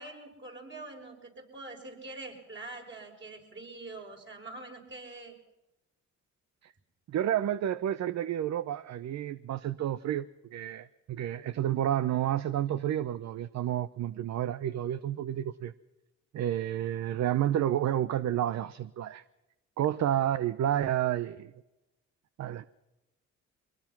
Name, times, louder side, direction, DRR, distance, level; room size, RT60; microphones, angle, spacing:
voice 1, 0.0-5.3, right 2 dB, 40° right, 6.3 m, -44 dB
voice 2, 7.1-15.7 16.3-19.2 19.8-21.5 22.4-22.7, right 11 dB, 60° right, 0.8 m, -30 dB
24.0 x 20.5 x 6.0 m
cardioid pair, 90°, 30 cm